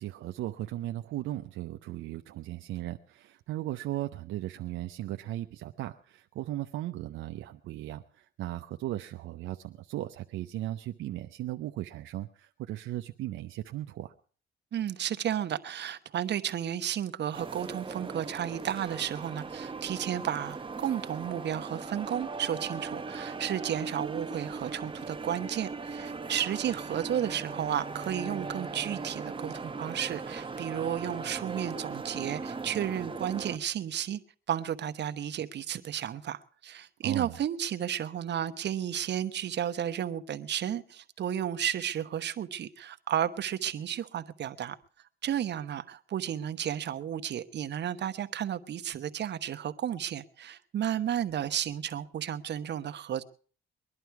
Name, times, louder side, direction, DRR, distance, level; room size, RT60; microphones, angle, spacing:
voice 1, 0.0-14.1 37.0-37.4, right 14 dB, 85° right, 0.7 m, -37 dB
voice 2, 14.7-34.2 34.5-44.7 45.2-53.2, right 10 dB, 60° right, 1.0 m, -33 dB
sound 1, 17.3-33.6, right 4 dB, 25° right, 0.9 m, -39 dB
21.5 x 11.0 x 4.7 m
cardioid pair, 90°, 20 cm